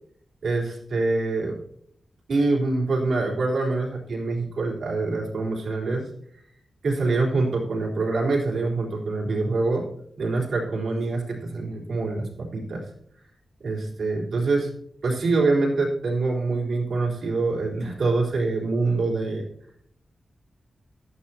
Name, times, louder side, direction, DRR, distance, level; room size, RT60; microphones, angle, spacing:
voice 1, 0.4-1.6 2.3-6.1 6.8-9.8 10.2-12.8 13.6-14.7 15.0-19.4, right 3 dB, 75° right, -2 dB, 3.8 m, -25 dB
14.5 x 12.0 x 2.9 m, 0.67 s
wide cardioid pair, 170°, 0 cm